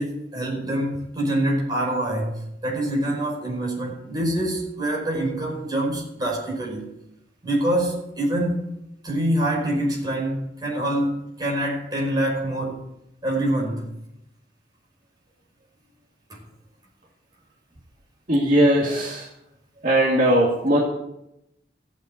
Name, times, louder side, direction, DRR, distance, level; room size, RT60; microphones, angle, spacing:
voice 1, 0.0-6.9 7.4-8.7 9.0-12.9 13.2-13.9 16.3-16.4, right 1 dB, 20° right, -1 dB, 5.4 m, -25 dB
voice 2, 18.3-19.3 19.8-20.8, right 1 dB, 45° right, -3 dB, 2.5 m, -19 dB
15.5 x 8.5 x 8.1 m, 0.83 s
head